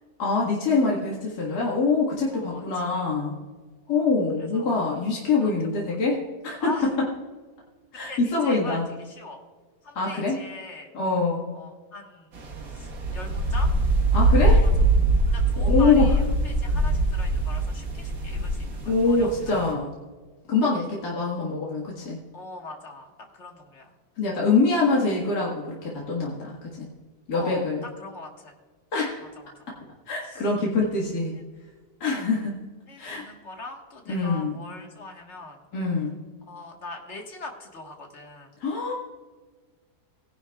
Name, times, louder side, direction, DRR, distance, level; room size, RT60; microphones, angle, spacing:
voice 1, 0.2-3.4 3.9-6.7 7.9-8.8 10.0-10.4 10.9-11.5 14.1-14.6 15.6-16.1 18.9-19.9 20.5-22.2 24.2-26.9 27.3-27.8 28.9-29.3 30.1-31.4 32.0-32.5 33.0-33.2 34.1-34.6 35.7-36.2 38.6-38.9, left 3 dB, 65° left, -4 dB, 2.3 m, -24 dB
voice 2, 2.3-3.1 3.9-4.1 4.4-4.7 5.4-5.5 5.9-6.0 6.6-7.0 7.9-9.4 9.8-10.9 11.5-12.3 12.7-13.7 14.4-14.7 15.3-19.6 22.3-24.0 27.3-28.6 29.2-29.5 30.2-30.5 32.2-32.3 32.9-35.6 36.5-38.5, left 2 dB, 45° left, 2 dB, 1.8 m, -41 dB
sound 1, 12.3-19.7, right 2 dB, 55° right, 2.0 m, -23 dB
18.0 x 10.5 x 2.4 m, 1.4 s
omnidirectional pair, 1.8 m